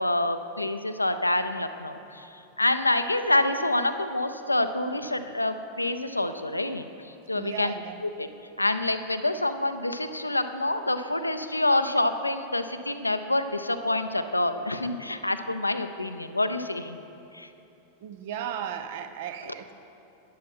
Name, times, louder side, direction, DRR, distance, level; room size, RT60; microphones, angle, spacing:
voice 1, 0.0-6.9 7.3-7.7 8.0-8.3 8.6-17.0 17.3-17.5, left 2 dB, 85° left, 9 dB, 0.5 m, -27 dB
voice 2, 7.3-8.0 18.0-19.7, right 8 dB, 50° right, 9 dB, 0.6 m, -35 dB
11.5 x 10.5 x 4.3 m, 2.7 s
figure-of-eight pair, 90°, 0 cm